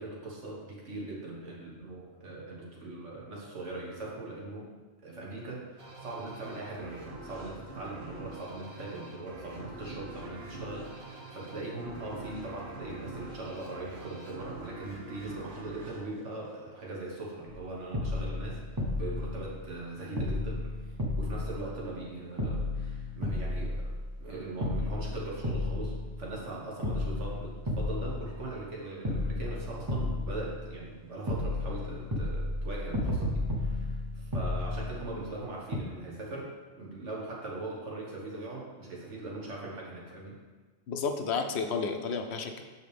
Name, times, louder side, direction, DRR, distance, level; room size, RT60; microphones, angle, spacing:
voice 1, 0.0-4.7 5.0-20.9 21.2-23.9 24.2-36.5 36.8-40.4, right 2 dB, 85° right, -4 dB, 1.7 m, -40 dB
sound 1, 5.8-17.0, right 2 dB, 65° right, 1.5 m, -45 dB
sound 2, 17.5-17.6 17.9-19.9 20.2-22.1 22.4-24.2 24.6-26.5 26.8-28.7 29.0-31.0 31.3-35.4 35.7-35.8, left 2 dB, 20° right, 0.7 m, -33 dB
voice 2, 40.9-42.6, left 5 dB, 70° left, 5 dB, 0.8 m, -31 dB
6.5 x 5.7 x 3.4 m, 1.4 s
omnidirectional pair, 1.2 m